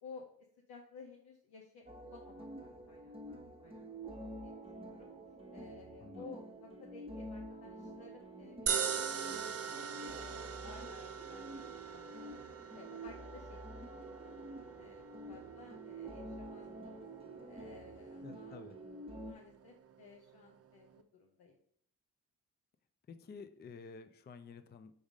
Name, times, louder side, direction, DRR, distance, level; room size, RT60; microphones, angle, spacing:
voice 1, 0.7-3.8 4.2-5.1 5.5-12.3 12.7-13.6 13.9-15.0 15.3-17.0 17.5-18.6 19.1-21.5, left 5 dB, 80° left, 0 dB, 0.8 m, -56 dB
sound 1, 1.9-19.3, right 1 dB, 15° right, 1.0 m, -48 dB
sound 2, 8.7-21.0, right 7 dB, 40° right, 0.6 m, -43 dB
voice 2, 18.2-18.8 23.1-24.9, left 5 dB, 25° left, 10 dB, 0.5 m, -51 dB
5.2 x 3.6 x 4.9 m, 0.63 s
supercardioid pair, 45°, 37 cm